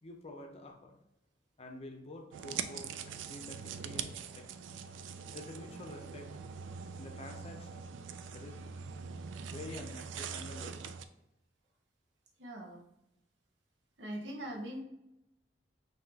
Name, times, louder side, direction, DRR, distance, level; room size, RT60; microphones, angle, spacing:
voice 1, 0.0-0.9 1.6-4.5 5.3-6.3 7.0-7.9 8.3-8.6 9.4-11.0, left 2 dB, 35° left, 3 dB, 0.6 m, -48 dB
sound 1, 2.3-11.0, right 6 dB, 90° right, 0.3 m, -43 dB
voice 2, 12.4-12.9 14.0-14.8, right 1 dB, 75° right, 0 dB, 0.9 m, -41 dB
5.6 x 2.7 x 2.8 m, 0.86 s
head